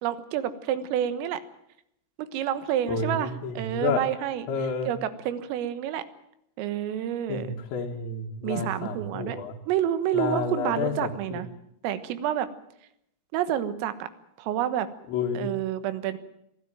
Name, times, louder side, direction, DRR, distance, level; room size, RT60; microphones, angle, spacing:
voice 1, 0.0-1.4 2.2-6.0 6.6-7.6 8.4-9.4 9.7-11.5 11.8-12.5 13.3-14.1 14.4-14.9 15.4-16.2, right 10 dB, 80° right, 12 dB, 3.9 m, -29 dB
voice 2, 2.9-4.0 4.5-4.9 7.3-9.5 10.1-10.9 11.3-11.4 15.1-15.5, left 5 dB, 65° left, -2 dB, 4.0 m, -30 dB
24.0 x 15.5 x 9.2 m, 0.77 s
omnidirectional pair, 5.9 m